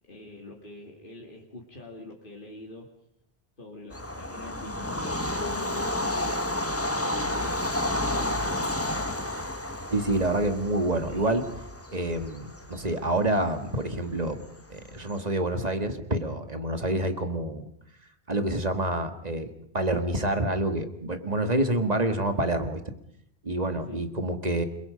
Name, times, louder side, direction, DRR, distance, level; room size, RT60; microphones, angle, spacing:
voice 1, 0.1-2.9 3.6-6.7 7.0-8.9 23.7-24.0, left 2 dB, 50° left, 0 dB, 2.7 m, -45 dB
Bird vocalization bird call bird song / Train, 3.9-15.1, left 1 dB, 15° left, 1.4 m, -31 dB
voice 2, 9.9-11.5 11.9-14.4 14.7-17.7 18.3-22.8 23.4-24.6, right 1 dB, 40° right, 8 dB, 2.0 m, -27 dB
29.0 x 22.0 x 5.2 m, 0.71 s
omnidirectional pair, 1.1 m